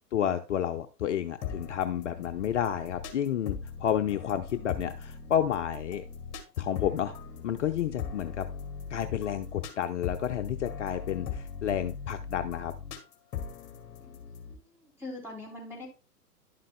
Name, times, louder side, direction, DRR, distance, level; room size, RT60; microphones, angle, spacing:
voice 1, 0.1-6.0 6.6-7.1 7.4-8.5 8.9-12.7, left 10 dB, 50° left, 7 dB, 0.6 m, -30 dB
sound 1, 1.4-14.5, left 6 dB, 25° left, 2.1 m, -40 dB
voice 2, 14.0-15.9, left 2 dB, 5° right, -2 dB, 3.4 m, -44 dB
11.0 x 7.4 x 2.2 m, 0.33 s
figure-of-eight pair, 120°, 47 cm